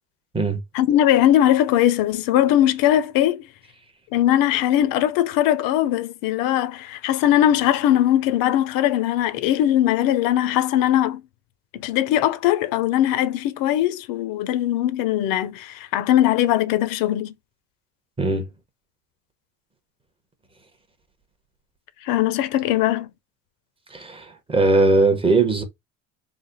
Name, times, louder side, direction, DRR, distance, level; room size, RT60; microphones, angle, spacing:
voice 1, 0.7-3.4 4.1-11.2 11.7-17.3 22.0-23.1, left 12 dB, 65° left, 0.6 m, -20 dB
voice 2, 18.2-18.5 23.9-25.6, right 3 dB, 15° right, 0.8 m, -19 dB
3.3 x 2.1 x 3.8 m
cardioid pair, 135°, 37 cm